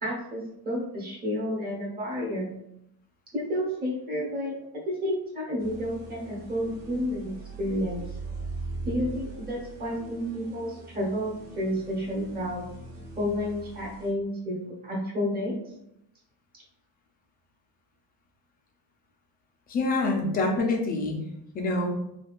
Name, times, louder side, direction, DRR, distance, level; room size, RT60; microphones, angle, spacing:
voice 1, 0.0-2.5 3.3-4.5 4.8-8.0 8.8-12.6 13.2-15.5, equal, 20° right, -3 dB, 1.0 m, -30 dB
sound 1, 5.6-14.1, right 3 dB, 75° right, 1.3 m, -41 dB
voice 2, 19.7-21.2 21.5-21.9, left 2 dB, 25° left, 1 dB, 0.4 m, -26 dB
3.6 x 2.4 x 2.4 m, 0.80 s
cardioid pair, 160°, 41 cm